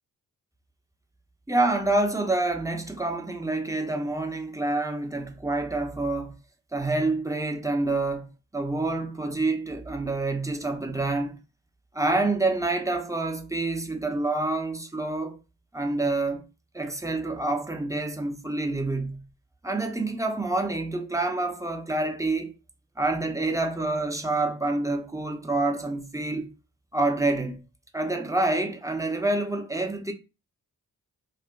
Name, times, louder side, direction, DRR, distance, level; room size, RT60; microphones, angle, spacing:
voice 1, 1.5-6.3 6.7-8.3 8.5-11.4 11.9-15.4 15.7-16.4 16.7-19.3 19.6-22.5 23.0-26.5 26.9-27.6 27.9-30.1, right 2 dB, 10° right, 0.7 m, -27 dB
2.5 x 2.1 x 3.6 m
supercardioid pair, 45°, 37 cm